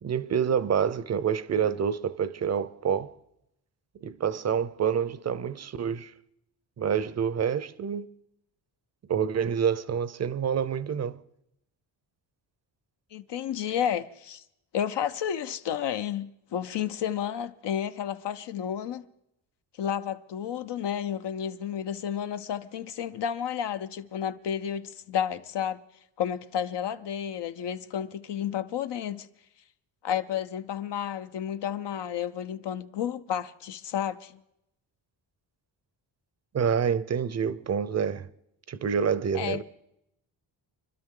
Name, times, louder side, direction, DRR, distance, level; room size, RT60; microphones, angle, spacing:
voice 1, 0.0-3.1 4.0-6.1 6.8-8.1 9.1-11.2 36.5-38.3 38.7-39.6, right 7 dB, 35° right, 0.6 m, -27 dB
voice 2, 13.1-14.4 14.7-19.0 19.8-25.8 26.2-29.3 30.0-34.4 39.3-39.6, left 9 dB, 65° left, 0.8 m, -31 dB
25.0 x 12.0 x 3.8 m
cardioid pair, 105°, 44 cm